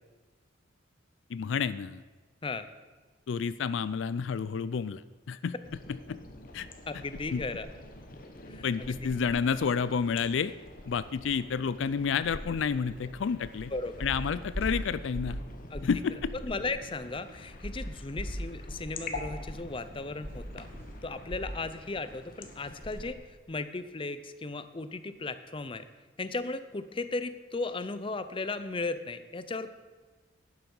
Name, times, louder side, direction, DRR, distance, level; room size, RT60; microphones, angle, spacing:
voice 1, 1.3-2.0 3.3-5.0 5.3-5.5 6.1-6.2 6.5-6.7 7.3-7.4 8.6-10.5 10.9-13.7 14.0-15.4 15.8-16.3, left 6 dB, 75° left, 16 dB, 0.4 m, -30 dB
sound 1, 5.6-23.1, left 2 dB, 45° left, 1.2 m, -46 dB
voice 2, 6.9-7.7 8.5-9.0 13.7-14.0 15.7-15.9 16.4-20.7 21.0-23.2 23.5-25.9 26.2-29.7, left 3 dB, 25° left, 12 dB, 0.6 m, -36 dB
sound 2, 12.9-13.0 13.4-13.7 14.0-15.5 15.7-16.0 16.4-16.5 17.6-21.6 21.9-22.2 22.5-22.6, equal, 30° right, 4.5 m, -39 dB
11.5 x 9.4 x 5.5 m, 1.3 s
head